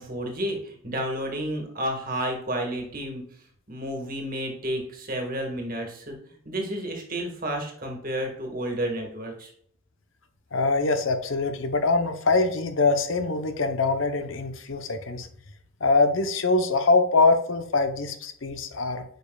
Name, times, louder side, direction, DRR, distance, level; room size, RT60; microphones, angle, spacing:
voice 1, 0.0-3.2 3.7-9.5, right 1 dB, 45° right, 2 dB, 1.6 m, -31 dB
voice 2, 10.5-15.3 15.8-19.0, left 3 dB, 70° left, 8 dB, 0.8 m, -23 dB
9.0 x 5.2 x 2.3 m, 0.63 s
head